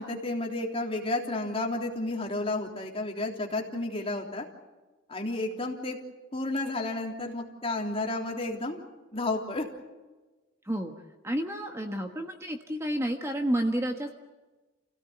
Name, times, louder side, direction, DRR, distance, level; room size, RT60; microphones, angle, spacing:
voice 1, 0.0-4.4 5.1-6.0 6.3-8.8 9.1-9.7, left 2 dB, 30° left, 1 dB, 3.4 m, -31 dB
voice 2, 11.2-14.1, right 1 dB, 15° right, 4 dB, 1.4 m, -30 dB
29.0 x 17.0 x 8.0 m, 1.2 s
head